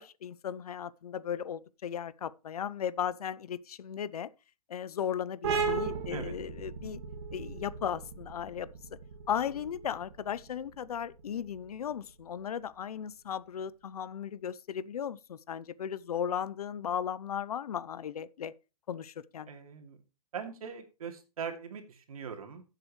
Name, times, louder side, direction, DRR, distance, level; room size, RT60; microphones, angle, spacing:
voice 1, 0.0-4.3 4.7-7.0 7.3-8.7 9.3-18.5 18.9-19.5, left 8 dB, 75° left, 0.7 m, -36 dB
sound 1, 5.4-12.7, right 5 dB, 45° right, 2.2 m, -37 dB
voice 2, 19.5-20.0 20.3-22.6, right 6 dB, 70° right, 2.7 m, -41 dB
14.5 x 7.8 x 3.2 m
hypercardioid pair, 170°, 19 cm